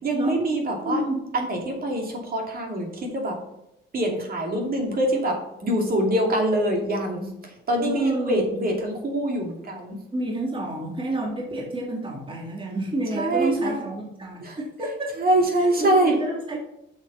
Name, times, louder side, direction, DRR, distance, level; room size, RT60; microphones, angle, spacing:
voice 1, 0.0-1.0 1.3-3.4 3.9-7.3 7.7-10.0 13.1-13.8 14.4-14.6 15.2-16.2, right 1 dB, 50° right, 1 dB, 2.6 m, -24 dB
voice 2, 0.8-1.2 7.8-8.6 10.1-15.1 15.6-16.6, right 2 dB, 25° right, -1 dB, 2.2 m, -29 dB
7.1 x 6.6 x 5.7 m, 0.84 s
cardioid pair, 90°, 20 cm